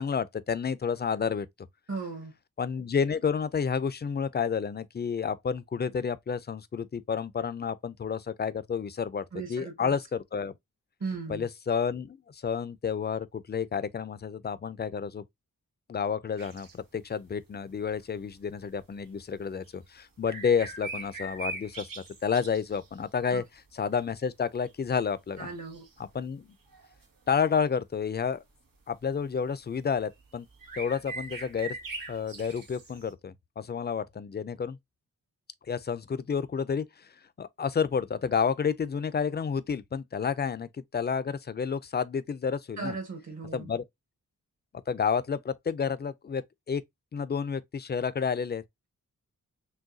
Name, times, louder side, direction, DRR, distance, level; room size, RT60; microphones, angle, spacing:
voice 1, 0.0-1.5 2.6-10.5 11.3-15.2 15.9-23.4 23.7-25.5 26.0-26.6 27.3-28.4 28.9-30.5 30.8-31.8 32.1-34.8 35.7-37.1 37.4-43.0 43.5-43.8 44.9-46.8 47.1-48.6, left 6 dB, 30° left, 0.4 m, -30 dB
voice 2, 1.9-2.3 9.3-10.0 11.0-11.5 23.3-23.4 25.4-25.8 42.8-43.7, right 4 dB, 55° right, 1.4 m, -37 dB
sound 1, 16.4-16.8 18.8-18.9 19.7-19.8 20.3-23.0 23.7-24.1 24.7-24.8 25.7-26.1 26.7-27.0 28.9-29.1 30.2-30.3 30.5-33.1, right 3 dB, 90° right, 1.4 m, -41 dB
6.2 x 2.3 x 2.6 m
wide cardioid pair, 100°, 32 cm